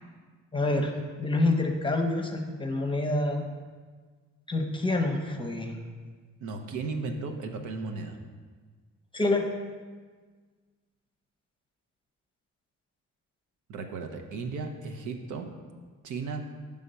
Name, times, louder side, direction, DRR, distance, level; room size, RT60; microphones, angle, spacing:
voice 1, 0.5-0.9 1.2-3.4 4.5-5.8 9.1-9.5, left 2 dB, 15° left, 3 dB, 0.8 m, -27 dB
voice 2, 6.4-8.2 13.7-15.5 16.0-16.4, right 4 dB, 80° right, 5 dB, 0.8 m, -35 dB
6.6 x 3.5 x 5.4 m, 1.5 s
cardioid pair, 90°, 30 cm